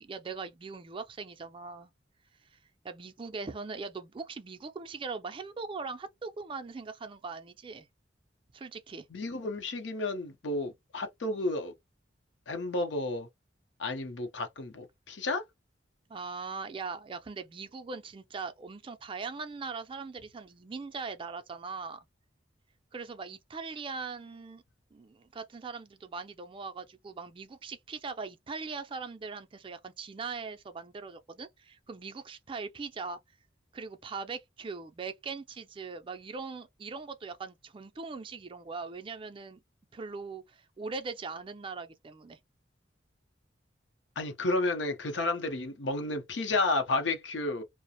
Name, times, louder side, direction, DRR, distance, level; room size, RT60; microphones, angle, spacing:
voice 1, 0.0-1.9 2.8-7.9 8.5-9.1 16.1-22.1 22.9-24.6 24.9-33.2 33.7-39.6 39.9-42.4, right 4 dB, 30° right, 0.4 m, -40 dB
voice 2, 9.1-11.7 12.5-13.3 13.8-15.4 44.2-47.6, left 2 dB, 85° left, 0.7 m, -31 dB
2.4 x 2.0 x 2.7 m
head